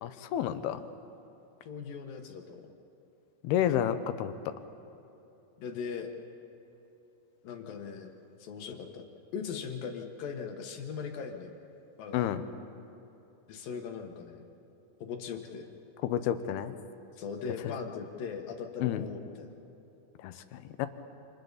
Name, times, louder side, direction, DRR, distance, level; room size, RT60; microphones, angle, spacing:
voice 1, 0.0-0.8 3.4-4.5 12.1-12.4 16.0-16.7 17.6-17.7 18.8-19.0 20.2-20.9, left 10 dB, 85° left, 10 dB, 2.9 m, -30 dB
voice 2, 1.6-2.7 5.6-6.1 7.4-8.1 8.4-9.1 9.3-11.5 12.0-12.2 13.5-14.4 15.0-15.7 17.2-19.5, left 6 dB, 70° left, 4 dB, 3.0 m, -39 dB
28.5 x 27.5 x 4.1 m, 2.9 s
omnidirectional pair, 4.4 m